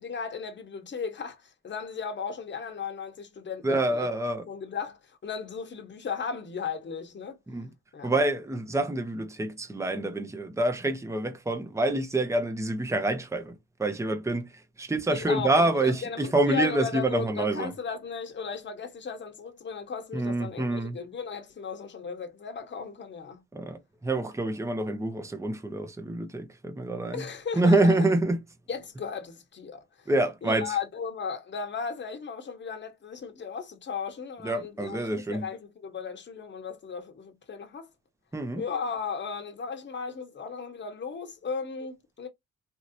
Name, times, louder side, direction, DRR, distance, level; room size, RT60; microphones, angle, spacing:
voice 1, 0.0-4.1 4.5-7.4 7.9-8.1 15.1-23.4 27.1-28.1 28.7-30.1 30.4-37.9 38.6-42.3, left 6 dB, 40° left, 1.1 m, -36 dB
voice 2, 3.6-4.4 7.5-7.7 8.0-17.7 20.1-21.0 23.5-27.3 27.5-28.4 30.1-30.8 34.4-35.5 38.3-38.6, right 2 dB, 10° right, 0.8 m, -27 dB
3.0 x 2.8 x 2.6 m
cardioid pair, 90°, 30 cm